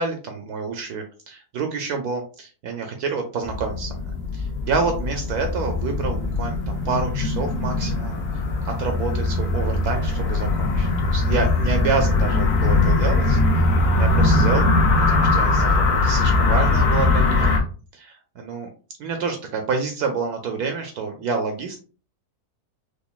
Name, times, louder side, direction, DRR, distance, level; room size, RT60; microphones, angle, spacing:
voice 1, 0.0-8.2 8.6-13.4 14.0-14.7 15.1-17.6 17.9-18.7 19.0-21.9, right 4 dB, 70° right, 5 dB, 1.1 m, -28 dB
sound 1, 3.4-17.6, left 3 dB, 65° left, 1.3 m, -21 dB
5.1 x 2.5 x 2.4 m, 0.37 s
omnidirectional pair, 1.8 m